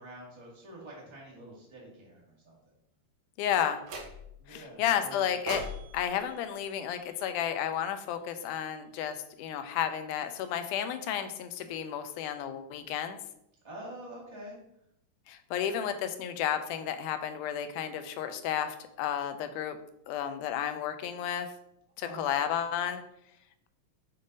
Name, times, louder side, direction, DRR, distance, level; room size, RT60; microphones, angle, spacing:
voice 1, 0.0-2.5 4.4-5.2 13.6-14.6 22.0-22.3, right 1 dB, 40° right, -4 dB, 0.4 m, -46 dB
voice 2, 3.4-3.8 4.5-5.7 5.9-13.2 15.3-19.8 20.1-21.5 22.0-23.0, left 9 dB, 85° left, 9 dB, 2.1 m, -32 dB
sound 1, 3.8-4.5 5.5-7.7, equal, 75° right, 2.4 m, -42 dB
7.1 x 2.6 x 5.2 m, 0.78 s
omnidirectional pair, 3.5 m